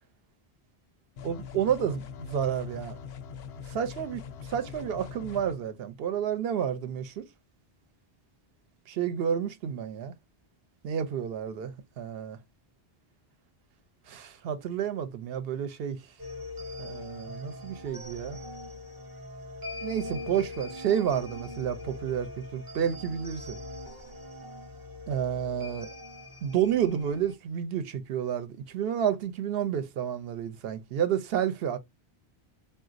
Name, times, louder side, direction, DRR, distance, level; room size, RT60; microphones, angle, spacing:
sound 1, 1.2-5.6, left 6 dB, 85° left, 0.8 m, -42 dB
voice 1, 1.2-3.0 3.7-7.2 8.9-10.2 10.8-12.4 14.1-16.1 16.8-18.4 19.8-23.6 25.1-25.9 26.4-31.8, right 9 dB, 75° right, 0.8 m, -30 dB
sound 2, 16.2-27.3, left 2 dB, 30° right, 0.4 m, -42 dB
3.9 x 2.3 x 2.4 m
omnidirectional pair, 1.0 m